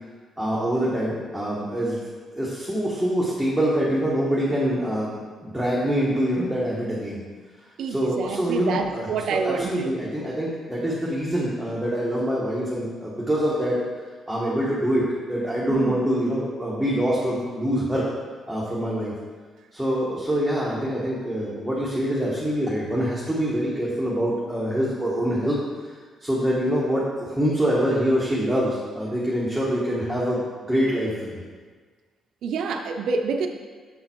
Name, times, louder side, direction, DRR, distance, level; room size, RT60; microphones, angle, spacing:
voice 1, 0.4-2.0 2.3-5.1 5.4-7.2 7.9-13.8 14.3-18.0 18.5-19.1 19.7-25.6 26.2-31.3, equal, ahead, -7 dB, 1.3 m, -25 dB
voice 2, 7.8-10.0 15.7-16.0 32.4-33.5, right 5 dB, 75° right, 5 dB, 0.6 m, -27 dB
7.0 x 3.9 x 4.4 m, 1.5 s
cardioid pair, 90°, 0 cm